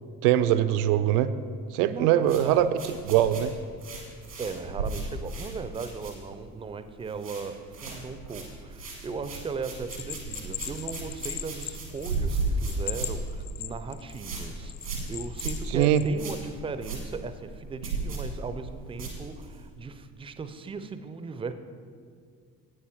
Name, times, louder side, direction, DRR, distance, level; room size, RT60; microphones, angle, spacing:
voice 1, 0.2-1.3 1.7-2.7 3.1-3.5 15.7-16.0, right 12 dB, 70° right, 13 dB, 0.5 m, -22 dB
voice 2, 1.9-2.7 4.4-21.5, right 4 dB, 10° right, 11 dB, 0.4 m, -37 dB
sound 1, 2.2-6.6 6.8-7.5 7.7-19.7, right 3 dB, 90° right, 1.5 m, -35 dB
Bell, 9.9-12.3 12.7-14.2 14.7-16.1, left 12 dB, 35° left, 0.6 m, -37 dB
9.7 x 8.4 x 4.5 m, 2.2 s
figure-of-eight pair, 50°, 49 cm